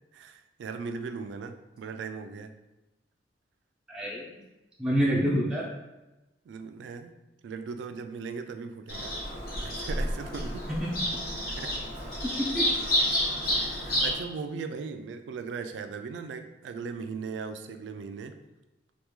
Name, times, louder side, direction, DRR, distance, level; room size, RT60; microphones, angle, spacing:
voice 1, 0.1-2.5 6.5-7.2 7.4-9.1 9.6-10.7 11.6-11.8 13.5-18.4, right 5 dB, 80° right, 7 dB, 0.3 m, -38 dB
voice 2, 3.9-4.4 4.8-5.7 10.7-11.0 12.4-12.7, equal, 5° right, -5 dB, 0.4 m, -27 dB
Bird vocalization bird call bird song, 8.9-14.1, equal, 55° left, 1.0 m, -29 dB
3.4 x 2.3 x 3.0 m, 1.0 s
head